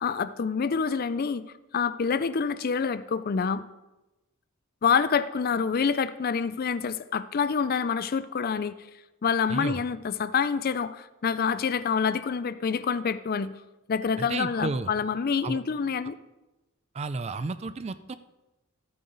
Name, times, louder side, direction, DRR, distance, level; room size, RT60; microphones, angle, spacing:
voice 1, 0.0-1.4 1.7-3.6 4.8-8.8 9.2-13.5 13.9-16.2, left 6 dB, 40° left, 14 dB, 0.4 m, -27 dB
voice 2, 14.2-14.9 15.4-15.6 17.0-18.1, right 3 dB, 30° right, 13 dB, 0.3 m, -32 dB
12.5 x 8.7 x 4.0 m, 1.0 s
head